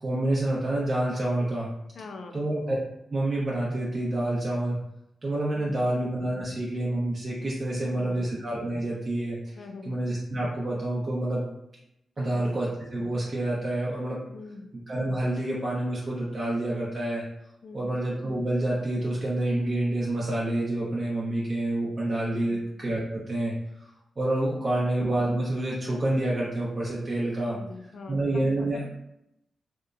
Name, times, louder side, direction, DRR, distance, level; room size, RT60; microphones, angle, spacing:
voice 1, 0.0-1.7 2.3-2.8 3.1-4.8 5.2-11.5 12.2-14.2 14.9-17.2 17.7-23.5 23.8-23.9 24.2-27.6 28.1-28.9, right 1 dB, 40° right, -6 dB, 0.5 m, -28 dB
voice 2, 1.9-2.5 5.5-5.9 7.8-8.3 9.6-9.9 12.2-12.5 14.3-14.7 17.6-18.0 27.5-28.9, left 4 dB, 70° left, 4 dB, 0.3 m, -43 dB
2.9 x 2.1 x 2.4 m, 0.82 s
cardioid pair, 70°, 0 cm